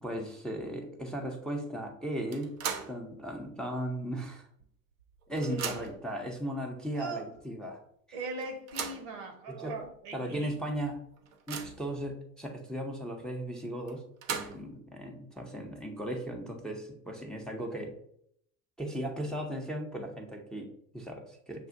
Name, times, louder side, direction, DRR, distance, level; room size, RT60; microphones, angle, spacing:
voice 1, 0.0-2.6 2.9-4.5 5.3-7.8 8.1-8.2 9.5-9.8 10.1-11.0 11.5-14.0 14.3-17.9 18.8-21.7, right 1 dB, ahead, 0.7 m, -37 dB
sound 1, 2.3-3.0 3.4-3.5 4.6-4.7 5.0-6.1 6.9-7.0 7.4-7.5 8.4-9.1 9.8-9.9 10.3-10.4 10.9-11.9 13.9-14.8, right 7 dB, 85° right, 0.6 m, -38 dB
voice 2, 5.3-5.9 6.9-7.3 8.1-10.6, right 3 dB, 65° right, 1.0 m, -40 dB
6.8 x 2.4 x 2.5 m
figure-of-eight pair, 65°, 40 cm